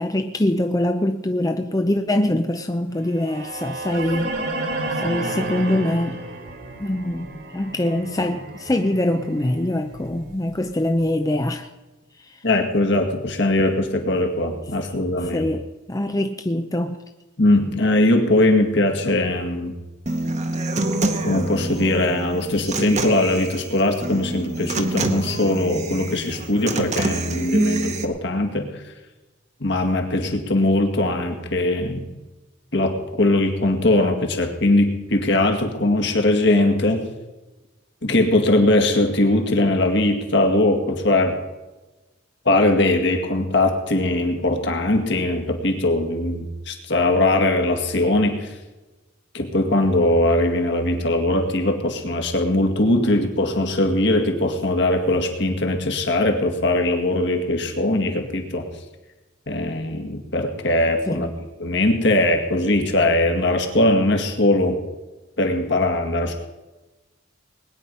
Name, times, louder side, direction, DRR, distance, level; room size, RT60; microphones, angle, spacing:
voice 1, 0.0-4.4 5.0-6.2 6.8-11.7 12.2-12.4 15.3-17.0 61.1-61.3, left 1 dB, 20° left, 6 dB, 0.6 m, -23 dB
sound 1, 3.1-11.2, right 2 dB, 55° right, 2.1 m, -32 dB
voice 2, 12.4-15.5 17.4-19.7 21.2-28.7 29.6-32.1 32.7-37.0 38.0-41.4 42.5-48.5 49.3-58.7 59.5-61.3 61.6-64.8 65.4-66.4, left 1 dB, 60° left, 3 dB, 2.2 m, -20 dB
Human voice / Acoustic guitar, 20.1-28.0, right 2 dB, 35° right, 1.2 m, -26 dB
20.5 x 9.9 x 5.5 m, 1.1 s
head